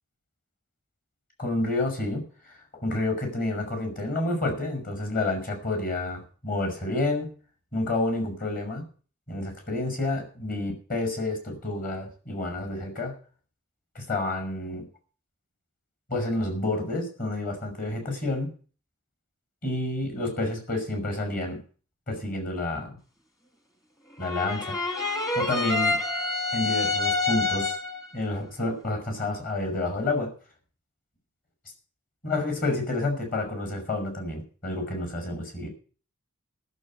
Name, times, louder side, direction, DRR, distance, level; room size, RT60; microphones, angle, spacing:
voice 1, 1.4-2.5 2.8-7.3 7.7-8.8 9.3-13.1 14.0-14.9 16.1-18.5 19.6-21.6 22.1-22.9 24.2-24.8 25.4-26.0 26.5-27.7 28.1-30.3 32.2-35.7, left 2 dB, 40° left, 5 dB, 5.5 m, -29 dB
sound 1, 24.2-28.1, left 3 dB, 15° left, 1.6 m, -27 dB
14.0 x 7.3 x 8.6 m, 0.40 s
head